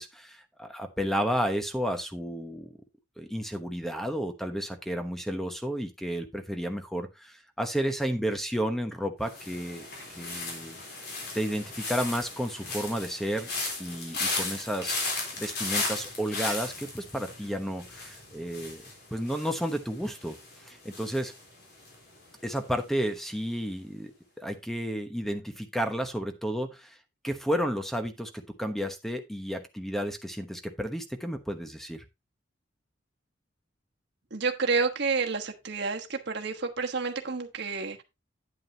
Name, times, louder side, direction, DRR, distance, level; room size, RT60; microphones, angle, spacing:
voice 1, 0.0-2.7 3.2-9.9 10.1-10.8 11.3-13.5 13.8-18.8 19.1-20.4 20.6-21.3 22.4-24.1 24.4-27.0 27.2-32.0, equal, ahead, 1.0 m, -32 dB
sound 1, 9.3-22.3 22.6-23.0, left 3 dB, 55° left, 3.7 m, -36 dB
voice 2, 34.3-38.0, right 4 dB, 60° right, 1.3 m, -29 dB
9.3 x 8.7 x 2.8 m
head